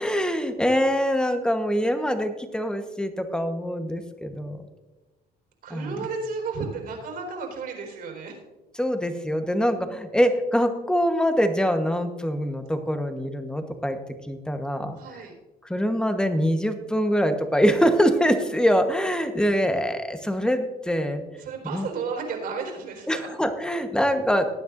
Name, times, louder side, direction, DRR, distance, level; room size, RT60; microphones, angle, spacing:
voice 1, 0.0-4.6 5.7-6.0 8.8-14.0 14.2-15.0 15.6-21.2 21.7-21.9 23.1-24.5, equal, 5° left, 7 dB, 1.2 m, -24 dB
voice 2, 5.6-8.4 15.0-15.3 21.4-23.3, right 4 dB, 65° right, 1 dB, 4.2 m, -33 dB
19.0 x 9.3 x 2.6 m, 1.1 s
cardioid pair, 110°, 17 cm